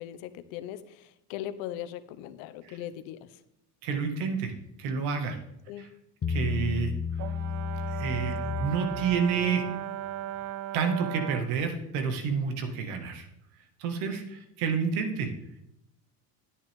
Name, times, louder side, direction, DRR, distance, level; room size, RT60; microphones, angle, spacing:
voice 1, 0.0-3.4 5.7-5.9, left 11 dB, 70° left, 12 dB, 1.1 m, -39 dB
voice 2, 3.8-4.5 4.8-5.4 5.8-5.9 6.3-7.2 7.9-8.3 8.6-9.6 10.7-13.3 13.8-15.3, right 6 dB, 70° right, 5 dB, 2.1 m, -29 dB
Bass guitar, 6.2-9.6, left 6 dB, 25° left, 0.8 m, -33 dB
Brass instrument, 7.2-11.6, right 12 dB, 35° right, 0.6 m, -37 dB
11.0 x 10.5 x 3.7 m, 0.82 s
hypercardioid pair, 75°, 49 cm